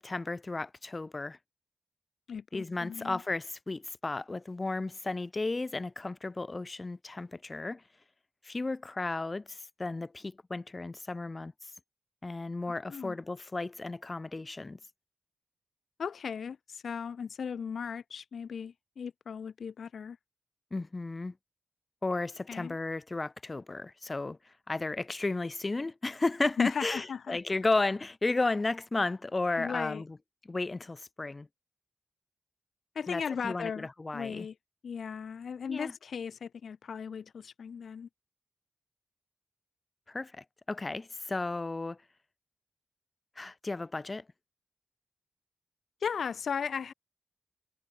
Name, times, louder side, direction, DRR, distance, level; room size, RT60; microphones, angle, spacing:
voice 1, 0.0-1.4 2.5-7.8 8.4-11.5 12.2-14.8 20.7-21.3 22.0-24.4 24.7-30.0 30.5-31.5 33.1-34.5 35.7-35.9 40.1-42.0 43.4-44.2, left 3 dB, 30° left, 0.9 m, -33 dB
voice 2, 2.3-3.2 12.9-13.2 16.0-20.2 22.5-22.8 26.6-27.4 29.6-30.0 33.0-33.9 34.1-34.5 34.8-38.1 46.0-46.9, left 6 dB, 75° left, 0.3 m, -36 dB
wide cardioid pair, 95°, 0 cm